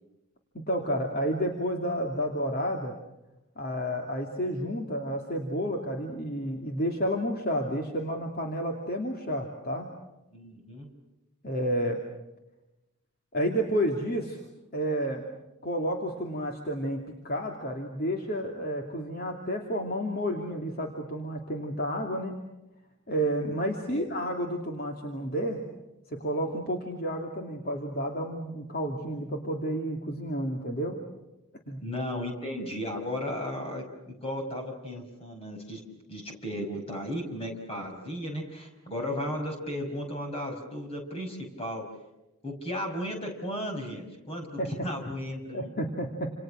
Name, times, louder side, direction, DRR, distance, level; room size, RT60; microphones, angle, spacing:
voice 1, 0.5-2.9 3.6-9.9 11.4-12.0 13.3-14.4 14.7-15.2 15.6-22.4 23.1-25.6 26.1-31.0 31.7-31.8 44.6-45.1 45.5-46.3, equal, 45° left, 2 dB, 2.8 m, -31 dB
voice 2, 10.3-10.9 23.9-24.1 31.8-35.8 36.1-41.8 42.4-45.7, equal, 25° left, 3 dB, 5.6 m, -35 dB
29.0 x 28.0 x 6.4 m, 0.97 s
head